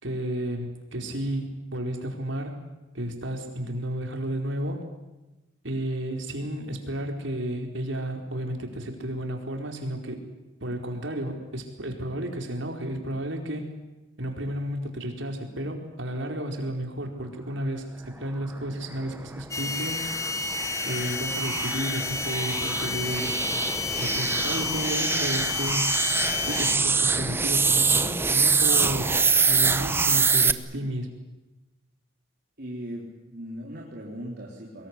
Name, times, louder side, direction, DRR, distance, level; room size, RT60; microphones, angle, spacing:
voice 1, 0.0-2.6 2.9-4.8 5.6-10.2 10.6-13.7 14.2-20.1 20.8-23.4 24.0-25.9 26.5-29.2 29.5-31.1, right 1 dB, 75° right, 3 dB, 4.5 m, -32 dB
sound 1, 19.0-30.5, right 4 dB, 10° right, 0.9 m, -25 dB
sound 2, 19.5-26.8, left 4 dB, 15° left, 1.3 m, -30 dB
voice 2, 32.6-34.9, equal, 55° right, -3 dB, 3.8 m, -38 dB
24.0 x 22.0 x 9.8 m, 1.1 s
head